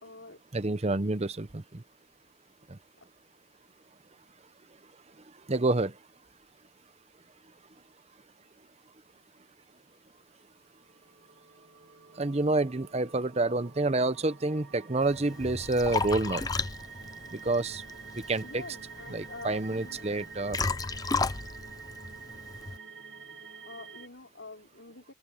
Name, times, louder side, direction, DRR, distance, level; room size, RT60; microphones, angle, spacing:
voice 1, 0.0-0.4 18.4-20.2 23.7-25.1, left 3 dB, 65° left, 4.4 m, -46 dB
voice 2, 0.5-1.8 2.7-2.8 5.5-5.9 12.2-16.5 17.3-17.8 18.3-18.6 19.1-20.6, right 2 dB, 30° right, 0.8 m, -28 dB
sound 1, 10.8-24.1, right 5 dB, 65° right, 2.2 m, -48 dB
Liquid, 15.0-22.8, left 4 dB, 20° left, 0.5 m, -35 dB
head